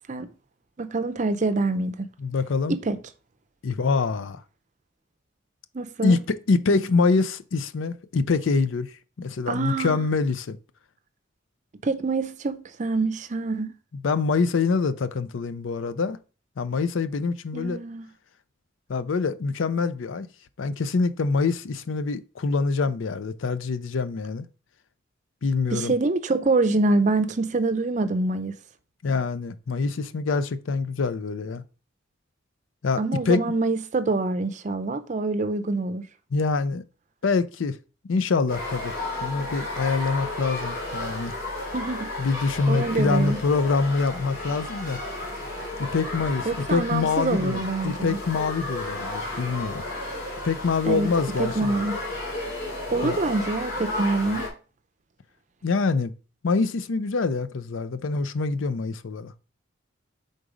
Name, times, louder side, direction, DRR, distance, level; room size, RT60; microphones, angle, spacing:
voice 1, 0.8-2.1 2.7-3.0 5.7-6.2 9.5-10.1 11.8-13.7 17.5-18.1 25.7-28.5 33.0-36.0 41.7-42.1 42.7-43.4 46.5-48.2 50.9-51.1 51.4-51.9 52.9-54.5, right 3 dB, 40° right, 0.5 m, -25 dB
voice 2, 2.2-2.8 3.6-4.4 6.0-10.6 14.0-16.2 16.6-17.8 18.9-20.3 20.6-24.5 25.4-25.9 29.0-31.6 32.8-33.5 36.3-36.8 37.2-37.8 38.0-38.9 39.2-41.3 42.2-45.0 45.8-49.8 50.4-51.7 53.0-53.2 55.6-56.1 56.4-59.3, left 4 dB, 80° left, 0.5 m, -25 dB
sound 1, 38.5-54.5, left 2 dB, 45° left, 2.8 m, -33 dB
5.1 x 3.9 x 4.9 m
head